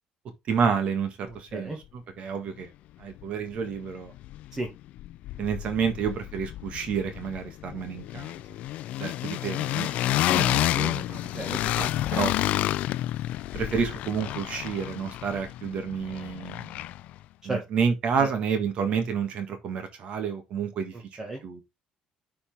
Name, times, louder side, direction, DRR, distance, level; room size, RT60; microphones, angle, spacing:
voice 1, 0.5-1.7 2.2-2.7 3.0-4.1 5.4-8.3 9.0-11.2 11.8-12.3 13.5-16.8 17.4-20.9 21.4-21.6, right 6 dB, 55° right, 1.6 m, -29 dB
voice 2, 1.2-1.8 4.5-4.7 11.1-11.6 17.4-17.6 18.2-18.3 20.9-21.4, right 2 dB, 20° right, 1.8 m, -34 dB
sound 1, 3.2-3.3 3.6-4.7 5.0-17.2, left 14 dB, 70° left, 0.4 m, -30 dB
10.5 x 4.3 x 3.5 m
cardioid pair, 145°, 2 cm